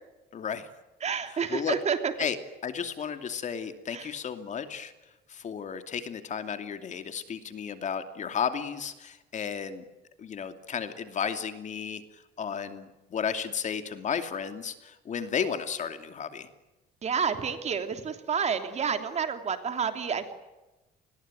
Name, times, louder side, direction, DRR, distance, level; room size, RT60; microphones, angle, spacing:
voice 1, 0.3-0.7 1.3-1.8 2.2-2.4 2.6-4.9 5.3-9.8 10.2-16.5, left 7 dB, 45° left, 8 dB, 2.7 m, -33 dB
voice 2, 1.0-2.1 3.9-4.1 17.0-20.3, right 6 dB, 40° right, 7 dB, 3.1 m, -29 dB
29.5 x 21.5 x 9.1 m, 1.1 s
cardioid pair, 110°, 17 cm